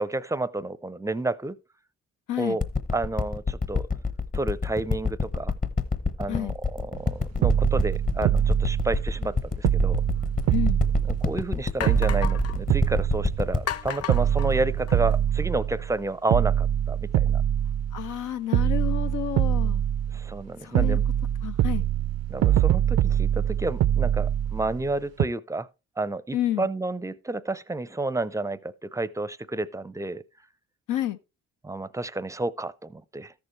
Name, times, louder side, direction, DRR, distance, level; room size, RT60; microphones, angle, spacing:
voice 1, 0.0-1.6 2.4-2.7 2.9-3.9 4.3-5.5 6.2-10.0 11.2-17.4 20.1-21.0 22.3-25.7 26.0-30.2 31.6-33.3, right 2 dB, 10° right, 0.5 m, -30 dB
sound 1, 2.6-15.4 15.9-16.0, left 4 dB, 25° left, 1.0 m, -28 dB
sound 2, 7.0-7.1 7.4-9.3 9.6-11.6 11.9-13.7 14.1-16.0 16.3-18.2 18.5-20.4 20.7-24.9 25.2-25.3, right 10 dB, 55° right, 0.4 m, -24 dB
sound 3, 10.4-10.5 11.2-11.3 11.8-12.6 13.7-15.2, left 10 dB, 55° left, 0.5 m, -34 dB
voice 2, 10.5-10.8 17.9-19.8 20.6-21.0 21.4-21.9 26.3-26.7 30.9-31.2, left 12 dB, 85° left, 0.9 m, -29 dB
13.5 x 6.8 x 3.2 m
cardioid pair, 90°, 30 cm